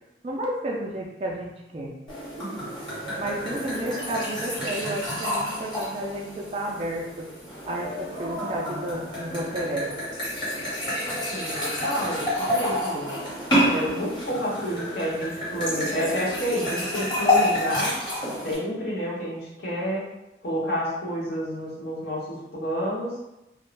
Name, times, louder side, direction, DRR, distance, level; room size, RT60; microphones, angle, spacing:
voice 1, 0.2-2.0 3.2-7.3 7.7-9.9, right 1 dB, 35° right, -2 dB, 0.3 m, -31 dB
sound 1, 2.1-18.6, left 1 dB, 25° left, 1.0 m, -29 dB
voice 2, 11.0-13.1 13.6-18.0 18.4-20.1 20.4-22.3 22.5-23.2, equal, 60° left, -6 dB, 0.9 m, -29 dB
2.4 x 2.1 x 3.1 m, 0.90 s
head